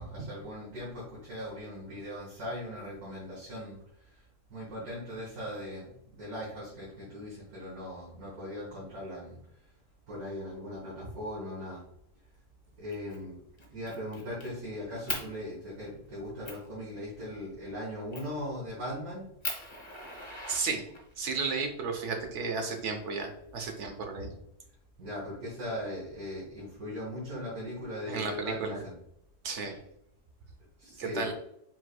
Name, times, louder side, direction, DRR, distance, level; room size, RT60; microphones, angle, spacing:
voice 1, 0.0-3.8 4.5-9.4 10.1-11.8 12.8-13.4 13.7-19.3 25.0-29.0 30.8-31.3, left 1 dB, 70° right, -6 dB, 1.7 m, -39 dB
Fire, 12.9-13.2 13.6-14.5 15.1-15.3 15.9-16.0 16.4-16.7 18.1-18.4 18.9-19.0 19.4-21.2 22.2-23.2, left 2 dB, 25° left, 0.6 m, -39 dB
voice 2, 20.5-20.8 21.2-24.3 28.1-28.8 29.4-29.8 31.0-31.3, right 4 dB, 55° right, 4 dB, 1.0 m, -33 dB
4.7 x 3.8 x 2.2 m, 0.74 s
omnidirectional pair, 1.6 m